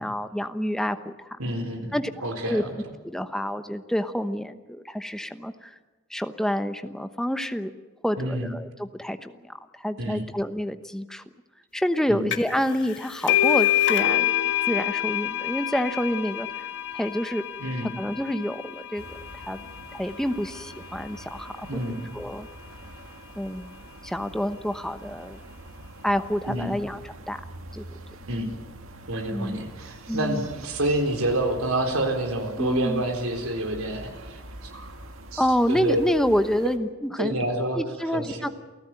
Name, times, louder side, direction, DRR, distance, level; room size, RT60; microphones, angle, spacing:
voice 1, 0.0-1.3 1.9-2.1 2.5-2.6 3.0-5.7 6.1-7.7 8.0-11.2 11.7-14.4 14.7-16.7 16.9-17.4 17.8-19.6 19.9-21.7 22.1-22.5 23.4-23.8 24.0-25.4 26.0-27.0 27.3-27.4 27.7-27.8 29.3-29.6 30.1-30.5 32.6-33.0 35.4-37.4 37.7-38.5, equal, 5° left, 9 dB, 1.0 m, -28 dB
voice 2, 1.4-2.7 8.2-8.5 10.0-10.3 12.1-12.3 17.6-17.9 21.6-22.1 26.5-26.8 28.3-28.6 29.1-34.7 35.3-36.0 37.2-37.8 38.1-38.5, right 1 dB, 90° right, 4 dB, 4.0 m, -28 dB
sound 1, 12.3-12.6 12.9-20.2, left 12 dB, 60° left, 1.6 m, -26 dB
sound 2, 18.9-36.8, right 1 dB, 70° right, 2.1 m, -45 dB
28.5 x 15.0 x 9.1 m, 1.2 s
head